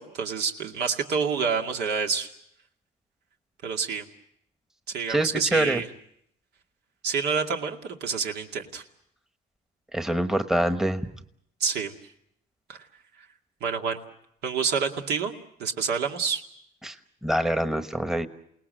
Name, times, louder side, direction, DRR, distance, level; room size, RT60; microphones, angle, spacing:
voice 1, 0.0-2.3 3.6-4.1 4.9-5.9 7.0-8.8 11.6-11.9 12.7-12.8 13.6-14.0 14.4-15.3 15.6-16.4, right 5 dB, 75° right, 3 dB, 2.4 m, -28 dB
voice 2, 5.1-5.8 9.9-11.0 16.8-16.9 17.2-18.3, right 1 dB, 5° right, 9 dB, 1.2 m, -25 dB
28.5 x 19.0 x 7.8 m, 0.73 s
cardioid pair, 110°, 17 cm